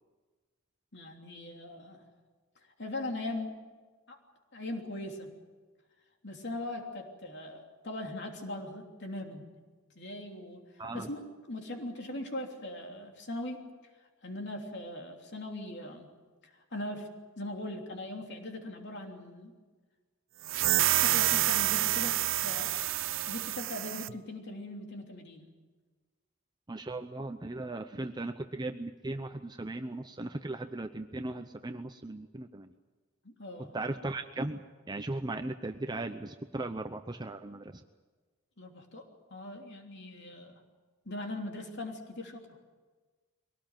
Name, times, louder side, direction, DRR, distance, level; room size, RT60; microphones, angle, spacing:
voice 1, 0.9-2.0 2.8-3.5 4.1-4.2 4.5-5.3 6.2-9.4 9.9-13.7 14.2-16.1 16.4-17.1 17.4-19.5 20.9-22.1 22.4-22.7 23.3-25.5 33.2-33.7 38.6-40.6 41.0-42.5, left 1 dB, 55° left, 2 dB, 3.2 m, -40 dB
voice 2, 10.8-11.1 26.7-32.7 33.7-37.8, right 2 dB, 20° right, 7 dB, 0.7 m, -37 dB
sound 1, 20.4-24.1, right 14 dB, 65° right, 0.6 m, -28 dB
23.0 x 18.5 x 9.1 m, 1.4 s
head